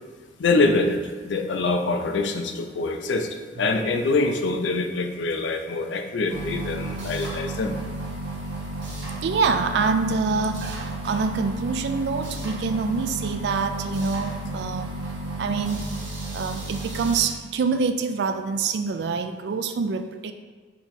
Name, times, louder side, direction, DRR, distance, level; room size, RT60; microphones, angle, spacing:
voice 1, 0.4-7.7, left 3 dB, 80° left, 5 dB, 0.4 m, -25 dB
sound 1, 6.3-17.2, right 2 dB, 80° right, 0.9 m, -33 dB
voice 2, 9.2-15.1 15.4-15.9 16.3-20.3, right 4 dB, 65° right, 8 dB, 0.3 m, -26 dB
4.3 x 2.9 x 4.0 m, 1.4 s
head